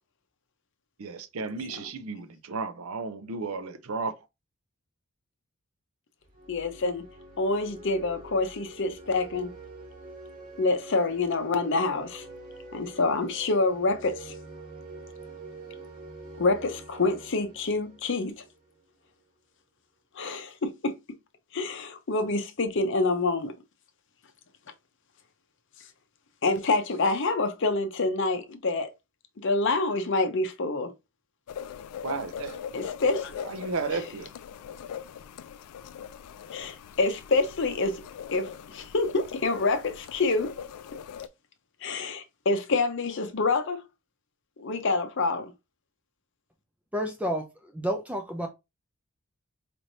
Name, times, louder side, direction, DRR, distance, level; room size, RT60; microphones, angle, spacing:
voice 1, 1.0-4.2 32.0-32.8 33.4-34.4, right 4 dB, 70° right, 0.6 m, -34 dB
sound 1, 6.2-18.9, right 2 dB, 40° right, 2.2 m, -46 dB
voice 2, 6.5-7.1 7.4-9.5 10.6-12.3 12.7-14.4 16.4-18.4 20.1-21.2 21.5-23.6 25.8-25.9 26.4-28.9 29.4-30.9 32.7-33.4 36.5-38.1 38.3-40.6 41.8-43.8 44.6-45.5, left 3 dB, 55° left, 0.7 m, -27 dB
sound 2, 31.5-41.3, left 8 dB, 90° left, 0.3 m, -41 dB
voice 3, 46.9-48.5, equal, 5° right, 0.4 m, -30 dB
4.3 x 3.2 x 2.6 m
head